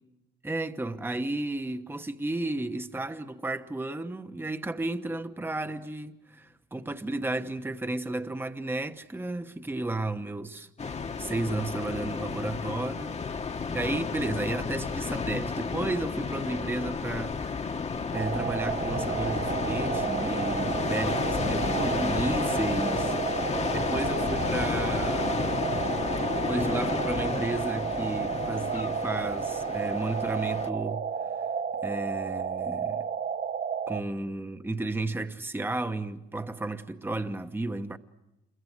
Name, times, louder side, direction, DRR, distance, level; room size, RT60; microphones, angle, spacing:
voice 1, 0.4-10.7 11.2-13.2 13.7-17.8 18.1-23.2 23.9-25.5 26.3-31.1 31.8-33.0 33.9-38.0, right 2 dB, 10° right, 1.0 m, -33 dB
sound 1, 10.8-30.7, left 5 dB, 35° left, 1.3 m, -32 dB
sound 2, 18.1-34.0, right 7 dB, 50° right, 1.5 m, -32 dB
27.0 x 22.5 x 8.0 m
cardioid pair, 90°, 20 cm